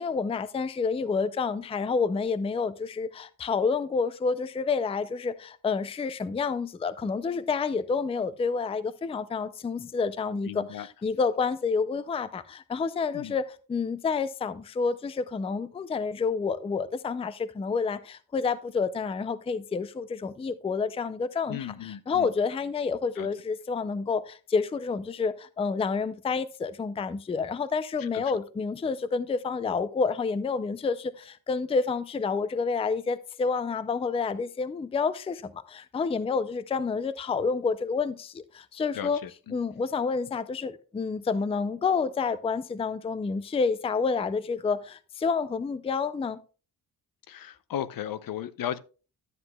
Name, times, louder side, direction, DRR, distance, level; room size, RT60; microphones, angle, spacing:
voice 1, 0.0-39.2 39.5-46.4, left 5 dB, 15° left, 0.4 m, -29 dB
voice 2, 10.4-10.9 13.1-13.4 21.5-22.3 23.2-23.3 28.0-28.4 38.9-39.6 47.3-48.8, left 10 dB, 65° left, 0.6 m, -36 dB
11.5 x 7.9 x 2.3 m
wide cardioid pair, 125°, 37 cm